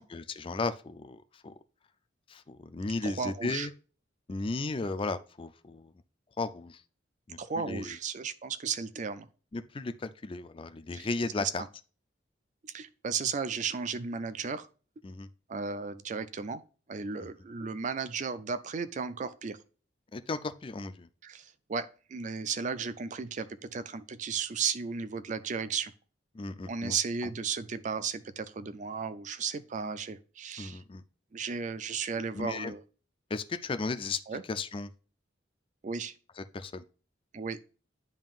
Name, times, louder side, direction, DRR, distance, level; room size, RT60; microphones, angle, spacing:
voice 1, 0.0-1.6 2.3-3.7 4.3-5.9 6.4-6.8 7.3-8.0 9.5-11.6 15.0-15.3 17.2-17.3 20.1-21.1 26.3-27.0 27.2-27.3 30.6-31.0 32.3-32.7 33.3-34.2 34.5-34.9 36.4-36.8, left 3 dB, 30° left, 0.4 m, -35 dB
voice 2, 3.0-3.7 7.4-9.3 10.9-11.1 11.4-11.5 12.6-14.7 15.5-16.6 16.9-19.6 21.2-25.9 26.7-30.8 31.3-32.8 34.3-34.4 35.8-36.1 37.3-37.6, right 5 dB, 40° right, 0.4 m, -34 dB
10.5 x 3.7 x 2.4 m
head